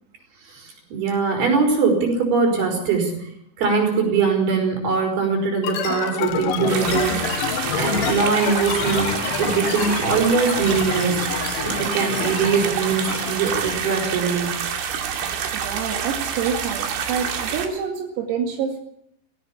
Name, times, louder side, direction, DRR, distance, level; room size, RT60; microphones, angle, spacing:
voice 1, 0.5-3.3 3.6-7.1 7.7-9.1 9.4-11.3 11.6-14.5, right 5 dB, 50° right, 4 dB, 7.1 m, -22 dB
sound 1, 5.6-13.9, left 9 dB, 70° left, 2.0 m, -28 dB
sound 2, 6.7-17.7, right 7 dB, 70° right, 4.5 m, -27 dB
voice 2, 15.5-18.8, right 6 dB, 85° right, 3 dB, 4.9 m, -27 dB
19.5 x 16.5 x 8.5 m, 0.73 s
omnidirectional pair, 6.0 m